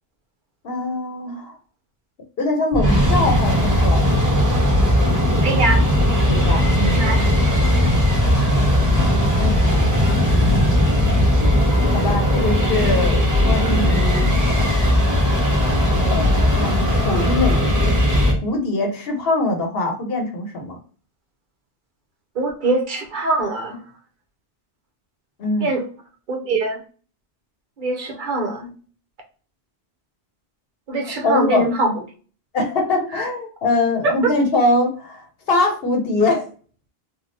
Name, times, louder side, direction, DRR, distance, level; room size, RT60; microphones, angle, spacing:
voice 1, 0.6-1.6 2.4-4.0 6.2-7.0 8.5-8.6 9.4-10.1 11.9-14.4 15.9-20.8 25.4-25.7 31.2-31.7 32.5-36.5, left 2 dB, 70° left, 3 dB, 1.0 m, -23 dB
sound 1, 2.7-18.3, left 1 dB, 20° right, 1.0 m, -17 dB
voice 2, 5.4-5.8 7.0-7.2 7.8-7.9 22.4-23.8 25.6-25.9 26.3-26.8 27.8-28.7 30.9-31.9, right 2 dB, 55° right, 2 dB, 0.8 m, -22 dB
3.4 x 2.4 x 2.5 m, 0.40 s
omnidirectional pair, 1.0 m